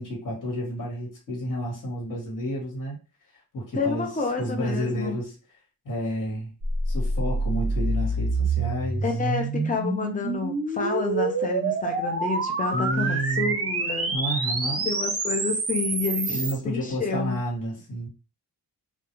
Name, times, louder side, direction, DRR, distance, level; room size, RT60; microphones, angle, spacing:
voice 1, 0.0-3.0 3.5-4.1 4.4-5.3 5.8-6.5 6.9-9.0 12.7-13.6 14.1-14.9 16.3-18.1, equal, 50° left, -3 dB, 1.3 m, -30 dB
voice 2, 3.8-5.2 9.0-14.1 14.9-17.4, left 4 dB, 20° left, 3 dB, 0.5 m, -29 dB
sound 1, 6.6-16.5, right 3 dB, 35° right, 0.5 m, -27 dB
2.3 x 2.1 x 2.9 m, 0.32 s
wide cardioid pair, 155°, 40 cm